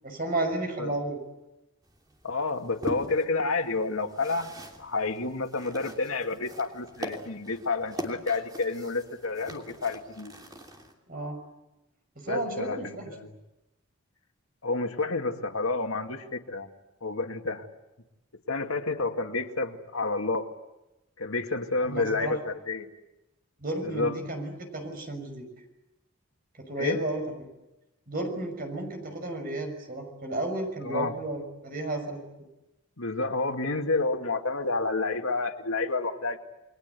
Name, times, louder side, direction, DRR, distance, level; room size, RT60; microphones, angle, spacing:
voice 1, 0.0-1.2 11.1-11.4 12.2-13.1 21.8-22.3 23.6-25.5 26.7-27.2 28.1-32.2, right 2 dB, 45° right, 5 dB, 6.1 m, -32 dB
sound 1, 1.8-10.9, equal, 20° right, 3.1 m, -42 dB
voice 2, 2.2-4.5 4.8-10.3 12.3-13.3 14.6-16.7 17.0-17.7 18.5-20.5 21.2-22.9 23.8-24.2 26.8-27.0 30.8-31.1 33.0-36.4, left 3 dB, 85° left, 5 dB, 2.1 m, -29 dB
29.5 x 22.0 x 8.3 m, 0.99 s
head